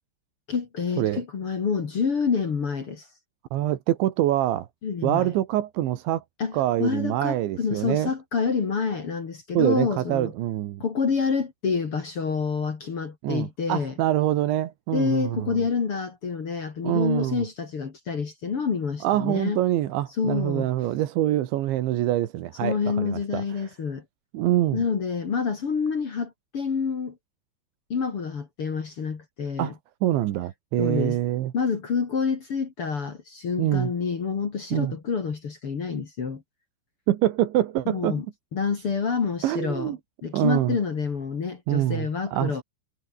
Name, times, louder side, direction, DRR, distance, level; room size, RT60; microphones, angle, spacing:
voice 1, 0.5-3.1 4.8-5.3 6.4-10.3 10.8-13.9 14.9-19.6 20.2-20.7 22.6-24.0 24.7-27.2 27.9-29.7 30.8-31.2 31.5-36.4 37.9-38.3 38.5-39.9 40.2-42.6, left 5 dB, 40° left, 2.1 m, -28 dB
voice 2, 3.5-4.7 5.0-6.2 6.5-8.1 9.6-10.8 13.2-15.6 16.8-17.4 19.0-23.4 24.3-24.8 29.6-29.7 30.0-31.5 33.6-33.9 34.7-34.9 37.1-38.2 39.4-40.0 40.3-40.8 41.7-42.6, right 13 dB, 70° right, 3.7 m, -25 dB
omnidirectional pair, 5.7 m